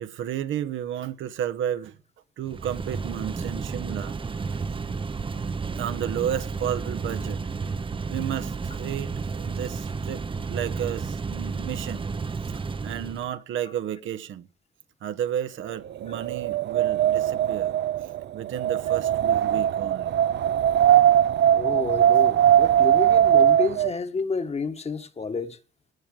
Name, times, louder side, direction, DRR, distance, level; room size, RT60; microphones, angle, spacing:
voice 1, 0.0-2.0 2.4-4.2 5.7-7.4 8.1-12.1 12.8-14.5 15.0-17.7 18.3-20.1, right 10 dB, 80° right, 1.3 m, -32 dB
sound 1, 2.4-13.3, right 4 dB, 25° right, 0.8 m, -32 dB
Wind, 16.0-23.9, right 10 dB, 60° right, 0.6 m, -20 dB
voice 2, 21.5-25.6, left 4 dB, 30° left, 1.5 m, -30 dB
17.5 x 9.2 x 5.0 m
cardioid pair, 90°, 20 cm